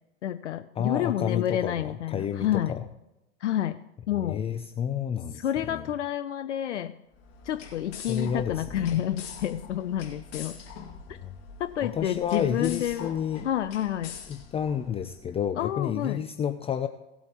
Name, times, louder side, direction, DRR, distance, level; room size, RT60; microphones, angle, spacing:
voice 1, 0.2-2.8 3.4-3.8 4.1-4.4 5.3-7.0 7.4-10.6 11.1-11.2 11.6-13.1 13.4-14.2 15.6-16.2, left 11 dB, 85° left, 12 dB, 0.6 m, -29 dB
voice 2, 0.8-2.8 4.2-5.8 8.1-9.0 11.2-11.3 11.8-13.5 14.3-16.9, left 8 dB, 15° left, 9 dB, 0.5 m, -30 dB
sound 1, 7.1-15.3, left 6 dB, 45° left, 2.4 m, -44 dB
18.0 x 8.3 x 3.0 m, 0.92 s
hypercardioid pair, 105°, 35 cm